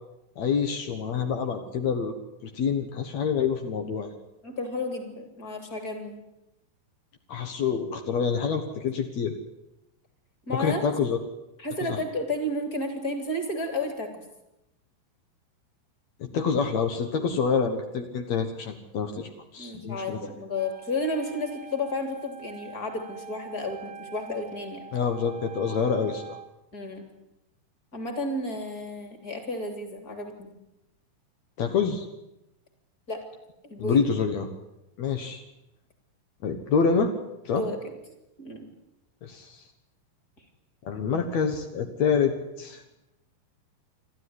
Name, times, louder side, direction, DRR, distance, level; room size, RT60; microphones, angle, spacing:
voice 1, 0.4-2.1 2.4-4.1 7.3-9.3 10.5-11.2 11.8-12.0 16.2-20.2 24.9-26.4 31.6-32.0 33.8-34.5 35.0-35.4 36.4-37.1 37.4-37.6 39.2-39.6 40.8-42.8, left 6 dB, 80° left, 6 dB, 1.5 m, -27 dB
voice 2, 4.4-6.2 10.5-10.8 11.6-14.2 19.6-24.9 26.7-27.1 27.9-30.5 33.1-33.2 33.6-34.0 37.5-37.9 38.4-38.7, left 1 dB, 20° left, 6 dB, 3.0 m, -32 dB
Wind instrument woodwind instrument, 20.6-26.5, right 7 dB, 80° right, 1.7 m, -45 dB
28.0 x 13.0 x 9.8 m, 0.91 s
omnidirectional pair, 5.4 m